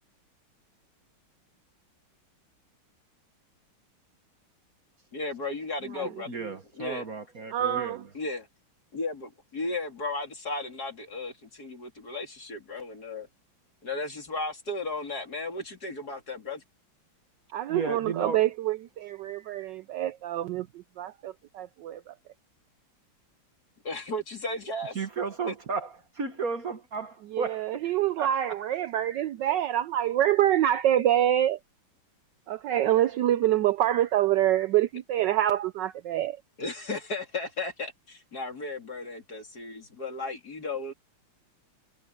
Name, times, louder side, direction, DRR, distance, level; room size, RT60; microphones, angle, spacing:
voice 1, 5.1-6.4 6.7-7.1 8.1-8.5 8.9-13.3 13.8-16.6 23.8-25.0 25.5-25.6 36.6-40.9, left 2 dB, 45° left, 3.9 m, -35 dB
voice 2, 6.3-8.0 17.7-18.4 25.0-27.9 28.2-28.3, right 5 dB, 45° right, 1.7 m, -33 dB
voice 3, 7.5-8.0 17.5-20.7 21.0-22.1 27.3-31.6 32.5-36.4, right 12 dB, 70° right, 1.1 m, -26 dB
omnidirectional pair, 2.3 m